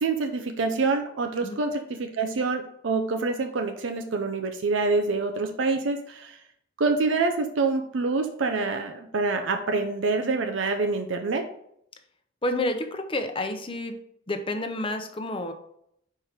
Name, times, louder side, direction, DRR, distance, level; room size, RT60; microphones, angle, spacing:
voice 1, 0.0-6.4 6.8-11.5, right 3 dB, 75° right, 5 dB, 0.6 m, -26 dB
voice 2, 12.4-13.9 14.3-15.5, left 1 dB, 25° left, 6 dB, 0.7 m, -29 dB
4.8 x 4.5 x 5.0 m, 0.71 s
head